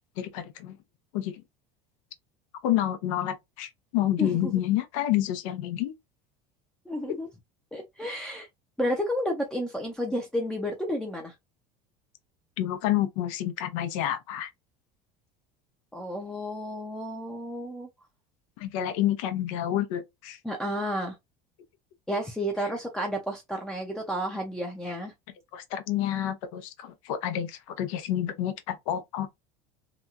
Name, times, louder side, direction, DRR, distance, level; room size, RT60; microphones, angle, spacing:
voice 1, 0.2-0.8 1.1-1.4 2.6-5.9 12.6-14.5 18.6-20.4 25.5-29.3, left 12 dB, 90° left, 0.6 m, -29 dB
voice 2, 4.2-4.5 6.9-7.3 7.7-8.5 8.8-11.3 15.9-17.9 20.4-21.1 22.1-25.1, equal, 5° left, 0.5 m, -31 dB
2.9 x 2.3 x 2.4 m
cardioid pair, 140°, 17 cm